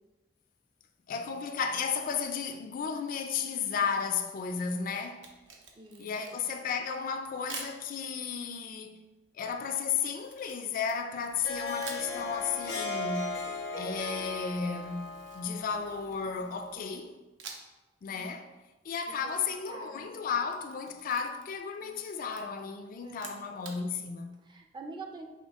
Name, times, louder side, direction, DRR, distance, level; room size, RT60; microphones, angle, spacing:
voice 1, 1.1-5.3 6.0-9.0 9.3-13.4 13.8-17.2 18.0-18.5 18.8-24.4, left 6 dB, 50° left, 0.3 m, -34 dB
Camera, 5.1-6.6 7.5-7.8 10.2-11.4 11.8-12.1 14.8-16.3 17.4-17.8 18.2-18.3 20.2-21.6 21.9-22.4 23.1-23.8, right 5 dB, 85° right, 0.6 m, -46 dB
voice 2, 5.7-6.1 18.0-18.3 19.7-20.1 21.8-22.0 23.0-23.3 24.5-25.3, right 3 dB, 25° right, 0.4 m, -46 dB
Harp, 11.3-16.7, left 3 dB, 90° left, 0.7 m, -37 dB
5.2 x 2.3 x 3.5 m
head